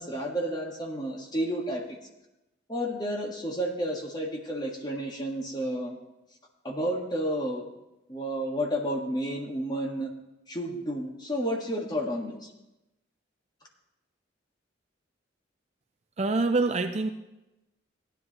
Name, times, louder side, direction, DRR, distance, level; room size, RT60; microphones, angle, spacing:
voice 1, 0.0-2.0 2.7-6.0 6.6-7.7 8.1-10.1 10.5-12.5, equal, 20° left, 0 dB, 1.6 m, -31 dB
voice 2, 16.2-17.1, right 3 dB, 35° right, 7 dB, 0.5 m, -25 dB
15.5 x 10.5 x 3.0 m, 0.95 s
head